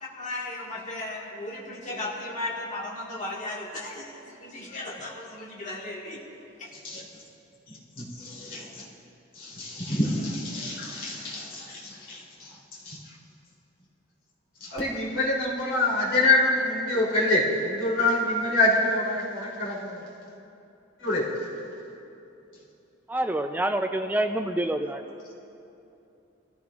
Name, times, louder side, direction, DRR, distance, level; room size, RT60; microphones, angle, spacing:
voice 1, 0.0-6.2 6.6-6.7, left 2 dB, 40° left, -4 dB, 1.6 m, -36 dB
voice 2, 8.0-8.7 9.4-12.2 12.8-13.0 14.7-20.0 21.0-21.2, left 2 dB, 70° left, -5 dB, 3.2 m, -26 dB
voice 3, 23.1-25.0, right 1 dB, 10° right, 6 dB, 0.3 m, -27 dB
23.0 x 14.0 x 2.4 m, 2.8 s
head